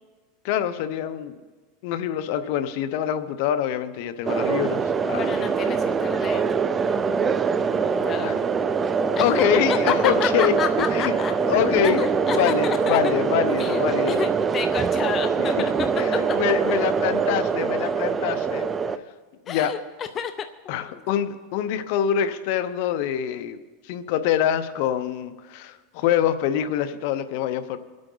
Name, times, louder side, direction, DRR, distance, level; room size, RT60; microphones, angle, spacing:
voice 1, 0.4-1.3 1.8-5.3 8.2-8.3 9.2-10.5 10.9-11.1 11.5-12.0 12.3-14.2 15.4-15.7 16.0-19.0 19.5-19.7 20.7-23.6 23.8-27.8, left 10 dB, 60° left, 11 dB, 0.8 m, -25 dB
sound 1, 4.3-19.0, right 5 dB, 20° right, 0.5 m, -23 dB
voice 2, 5.2-6.7 7.9-8.5 9.2-9.3 9.7-11.3 11.8-13.0 13.6-15.9 16.6-16.8 19.5-21.0, left 8 dB, 30° left, 8 dB, 0.6 m, -30 dB
24.0 x 8.7 x 4.0 m, 1.3 s
supercardioid pair, 140°, 0 cm